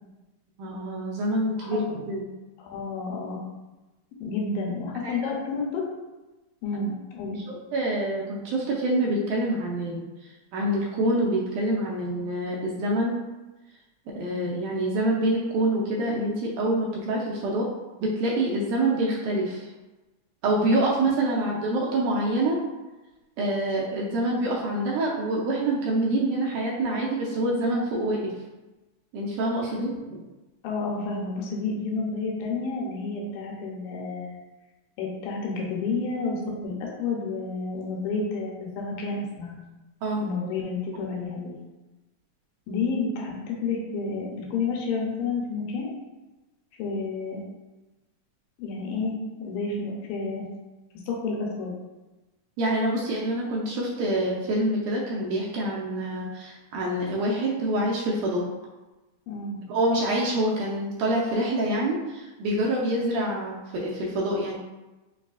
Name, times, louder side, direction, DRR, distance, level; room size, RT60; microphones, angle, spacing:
voice 1, 0.6-2.3 5.0-5.3 7.4-13.2 14.2-17.7 18.0-19.7 20.4-22.6 23.4-28.3 29.1-30.2 40.0-40.3 42.7-42.8 52.6-58.4 59.7-64.6, right 1 dB, 80° right, -3 dB, 1.8 m, -26 dB
voice 2, 2.6-3.4 4.2-5.8 6.6-7.4 30.6-34.4 35.0-39.6 40.2-41.5 42.7-45.9 46.8-47.4 48.6-50.5 51.1-51.7 59.3-59.6, left 4 dB, 85° left, -2 dB, 2.4 m, -30 dB
5.3 x 2.4 x 2.3 m, 1.1 s
omnidirectional pair, 3.9 m